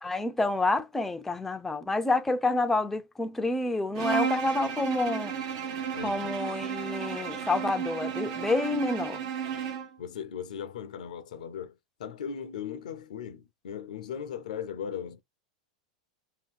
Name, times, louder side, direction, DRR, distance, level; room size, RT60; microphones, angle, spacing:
voice 1, 0.0-5.3 6.0-9.2, left 2 dB, 5° left, 0.4 m, -28 dB
Bowed string instrument, 3.9-10.0, right 7 dB, 65° right, 0.8 m, -33 dB
voice 2, 5.9-6.4 10.0-11.7 12.0-15.2, left 8 dB, 80° left, 0.5 m, -38 dB
2.7 x 2.3 x 3.6 m
hypercardioid pair, 110°, 4 cm